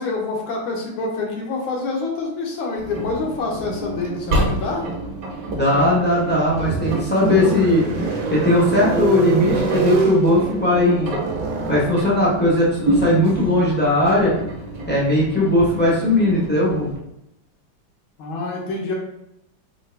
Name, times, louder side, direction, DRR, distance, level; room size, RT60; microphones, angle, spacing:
voice 1, 0.0-4.8 18.2-18.9, left 3 dB, 85° left, -1 dB, 1.8 m, -26 dB
Engine, 2.8-17.0, right 1 dB, 50° right, 1.4 m, -29 dB
voice 2, 5.5-7.9 8.3-11.1 11.7-14.4 14.9-16.9, left 1 dB, 15° left, -7 dB, 0.4 m, -18 dB
sound 1, 6.0-16.0, right 4 dB, 75° right, 1.5 m, -27 dB
4.5 x 2.4 x 3.3 m, 0.83 s
omnidirectional pair, 2.1 m